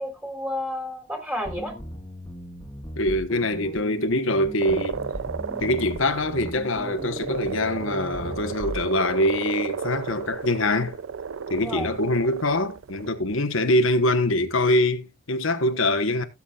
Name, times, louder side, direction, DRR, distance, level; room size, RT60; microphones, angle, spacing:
voice 1, 0.0-1.7 11.5-11.9, left 1 dB, 10° right, 3.2 m, -31 dB
sound 1, 1.4-8.8, equal, 15° left, 1.6 m, -38 dB
voice 2, 3.0-5.0 5.6-11.0 11.5-16.2, left 1 dB, 85° left, 1.2 m, -24 dB
sound 2, 4.6-13.1, right 6 dB, 80° right, 0.5 m, -34 dB
17.0 x 7.2 x 2.4 m
head